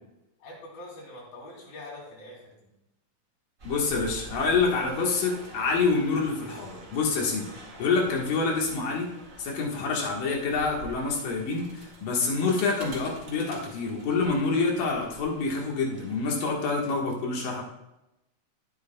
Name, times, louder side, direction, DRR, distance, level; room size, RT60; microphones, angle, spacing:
voice 1, 0.4-2.7, left 2 dB, 85° left, -2 dB, 4.6 m, -44 dB
voice 2, 3.6-7.5 7.8-9.1 9.4-17.6, left 4 dB, 70° left, -1 dB, 3.1 m, -27 dB
sound 1, 3.6-16.5, right 2 dB, 35° right, 1.2 m, -47 dB
11.5 x 9.3 x 2.2 m, 0.89 s
omnidirectional pair, 4.1 m